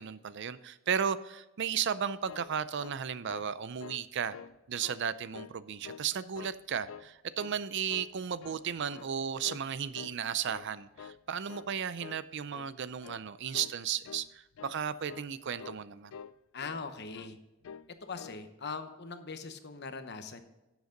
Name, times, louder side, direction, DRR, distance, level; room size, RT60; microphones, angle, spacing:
voice 1, 0.0-4.4 4.7-16.1, right 7 dB, 60° right, 0.5 m, -34 dB
sound 1, 2.0-3.5 3.8-4.1 4.3-5.0 5.3-6.1 6.4-7.1 7.4-7.6 7.9-8.7 8.9-9.2 9.4-9.7 9.9-10.7 11.0-11.2 11.5-11.7 12.0-12.3 12.5-12.8 13.0-13.2 13.5-13.8 14.0-14.3 14.5-14.8 15.1-15.3 15.6-15.8 16.1-16.9 17.1-17.3 17.6-17.9 18.2-18.4, left 7 dB, 80° left, 0.4 m, -48 dB
voice 2, 16.5-17.4 18.0-20.4, left 4 dB, 55° left, 1.0 m, -41 dB
11.5 x 8.0 x 3.9 m
head